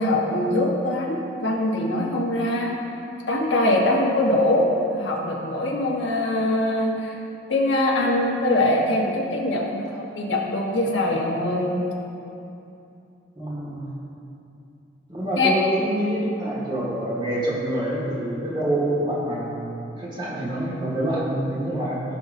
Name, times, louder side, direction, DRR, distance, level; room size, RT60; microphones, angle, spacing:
voice 1, 0.0-2.8 3.3-7.2 7.5-11.8 15.4-15.5, left 1 dB, 75° left, -2 dB, 1.3 m, -23 dB
voice 2, 13.4-13.9 15.1-22.0, right 1 dB, 25° right, -7 dB, 2.0 m, -26 dB
16.5 x 5.8 x 2.7 m, 2.8 s
head